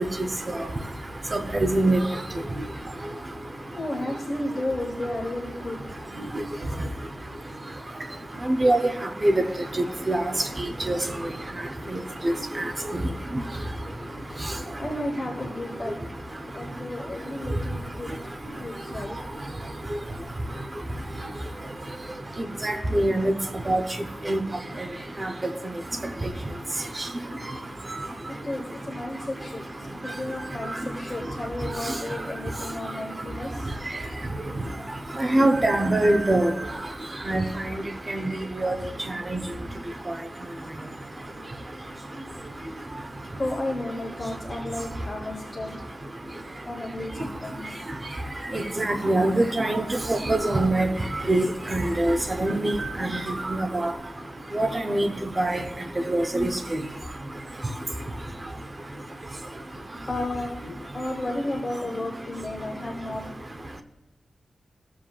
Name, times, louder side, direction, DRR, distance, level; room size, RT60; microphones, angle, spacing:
voice 1, 1.3-2.0 8.6-8.9 9.2-9.3 10.1-10.2 10.9-11.0 22.6-23.3 23.7-23.8 24.3-24.4 35.3-36.5 37.3-37.4 38.1-38.3 38.6-38.8 39.3-39.4 48.5-50.9 51.3-52.7 53.0-53.2 53.5-53.9 54.6-55.1 55.4-55.6 56.1-56.5, right 1 dB, 25° right, 6 dB, 0.6 m, -22 dB
voice 2, 3.4-6.4 9.7-18.2 18.5-19.3 28.3-29.6 30.0-33.7 43.4-45.8 46.6-47.6 56.0-56.1 60.1-63.2, left 1 dB, 25° left, 1 dB, 1.0 m, -34 dB
14.5 x 7.5 x 2.3 m, 1.1 s
wide cardioid pair, 170°, 0 cm